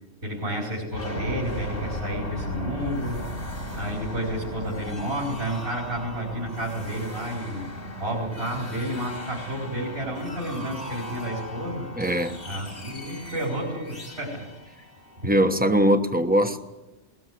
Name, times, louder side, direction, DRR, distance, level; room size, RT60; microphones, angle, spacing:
voice 1, 0.2-3.2 3.7-7.7 8.0-11.9 12.4-14.5 15.2-15.3, right 1 dB, 65° right, 5.0 m, -31 dB
sound 1, 0.9-15.6, left 1 dB, 80° left, 3.6 m, -36 dB
voice 2, 12.0-12.4 15.2-16.6, equal, 10° right, 1.1 m, -21 dB
21.0 x 20.0 x 7.9 m
omnidirectional pair, 1.2 m